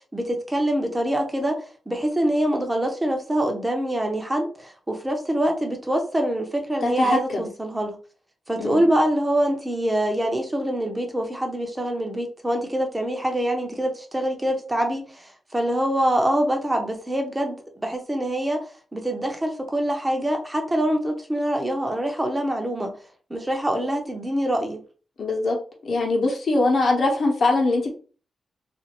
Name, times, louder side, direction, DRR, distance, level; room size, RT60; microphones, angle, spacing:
voice 1, 0.1-1.6 1.9-8.0 8.5-18.6 18.9-22.9 23.3-24.8, right 1 dB, 15° right, 0.6 m, -25 dB
voice 2, 6.8-7.5 8.6-8.9 25.2-25.6 25.8-28.0, left 2 dB, 60° left, 0.9 m, -22 dB
2.5 x 2.4 x 2.9 m
cardioid pair, 80°, 0 cm